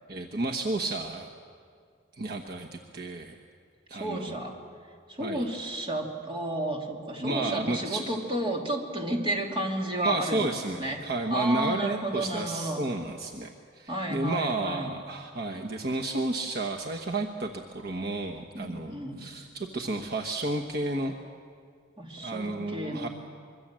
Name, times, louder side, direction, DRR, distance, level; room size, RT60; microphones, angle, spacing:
voice 1, 0.1-1.3 2.1-3.4 3.9-4.4 5.2-5.5 7.1-8.0 10.0-21.2 22.2-23.1, right 2 dB, 55° right, 2 dB, 1.2 m, -32 dB
voice 2, 3.9-4.5 5.1-10.4 10.8-11.0 11.3-12.8 13.9-15.0 18.5-19.2 22.0-23.1, right 1 dB, 30° right, 0 dB, 3.1 m, -32 dB
25.5 x 23.0 x 7.6 m, 2.2 s
head